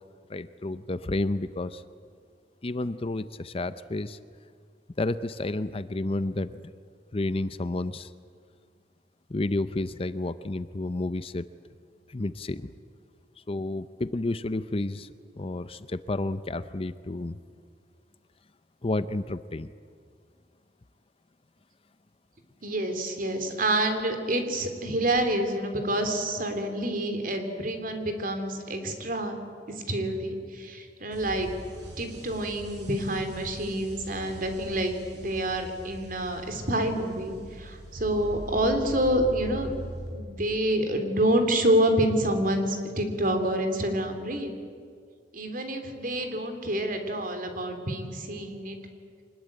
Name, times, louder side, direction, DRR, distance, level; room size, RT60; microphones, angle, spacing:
voice 1, 0.3-1.8 2.6-4.2 5.0-6.7 7.1-8.1 9.3-11.5 12.1-12.6 13.5-15.1 15.4-17.4 18.8-19.7, left 2 dB, 35° left, 14 dB, 0.6 m, -31 dB
voice 2, 22.6-29.3 29.7-31.5 32.0-39.7 40.1-44.5 45.3-48.8, right 1 dB, 50° right, 6 dB, 3.2 m, -27 dB
sound 1, 31.1-40.1, equal, 70° right, 7.5 m, -42 dB
24.5 x 20.5 x 8.9 m, 2.1 s
head